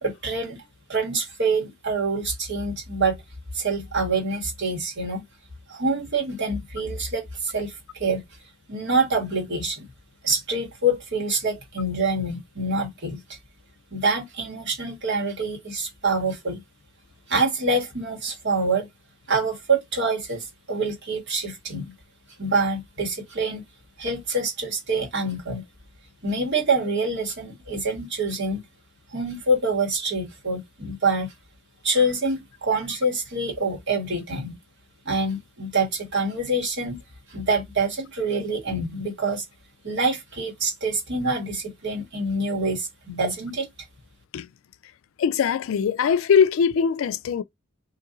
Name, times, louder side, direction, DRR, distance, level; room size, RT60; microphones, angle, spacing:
voice 1, 0.0-0.6 0.9-3.2 3.5-5.2 5.7-8.2 8.7-9.8 10.2-13.4 13.9-16.6 17.3-18.9 19.3-21.9 22.4-23.6 24.0-25.6 26.2-28.6 29.1-31.3 31.8-34.5 35.0-37.0 37.3-39.4 39.8-43.7, right 2 dB, 55° right, 1.5 m, -26 dB
voice 2, 45.2-47.4, left 7 dB, 70° left, 0.3 m, -21 dB
2.7 x 2.6 x 3.8 m
head